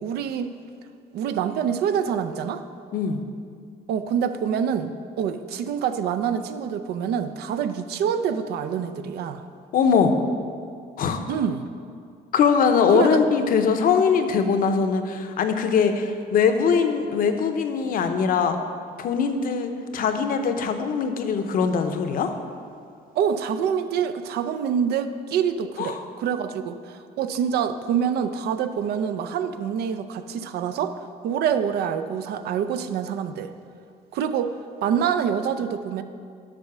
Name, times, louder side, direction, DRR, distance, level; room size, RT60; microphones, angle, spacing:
voice 1, 0.0-0.6 1.1-2.6 3.9-9.5 11.3-11.7 12.9-13.2 23.2-33.5 34.1-34.5 34.8-36.0, right 8 dB, 70° right, 10 dB, 0.5 m, -26 dB
voice 2, 2.9-3.2 9.7-10.1 11.0-11.2 12.3-18.6 19.0-22.3 25.8-26.0, left 6 dB, 55° left, 7 dB, 0.7 m, -21 dB
7.6 x 5.5 x 6.0 m, 2.3 s
cardioid pair, 110°, 17 cm